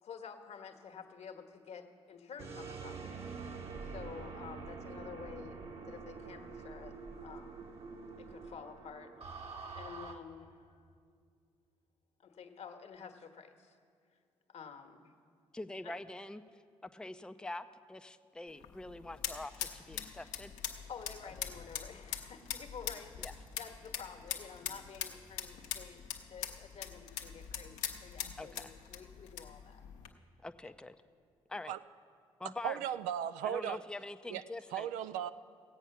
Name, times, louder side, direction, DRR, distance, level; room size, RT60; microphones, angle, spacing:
voice 1, 0.0-3.2 3.8-6.9 7.2-7.6 8.2-10.6 12.2-13.8 14.5-15.1 15.8-16.0 20.2-20.3 20.9-29.8, left 6 dB, 55° left, 6 dB, 1.2 m, -50 dB
sound 1, 2.4-10.1, right 4 dB, 50° right, 1.4 m, -46 dB
voice 2, 15.5-16.4 16.8-20.5 23.2-23.3 28.4-28.7 30.4-31.0 31.5-31.7 32.4-32.8 33.4-34.9, left 2 dB, 5° left, 9 dB, 0.5 m, -44 dB
sound 2, 18.5-30.1, left 8 dB, 75° left, 0.9 m, -43 dB
voice 3, 32.6-33.8 34.3-34.4 34.7-35.3, right 10 dB, 80° right, 13 dB, 0.4 m, -36 dB
16.5 x 8.1 x 5.8 m, 2.2 s
hypercardioid pair, 50°, 13 cm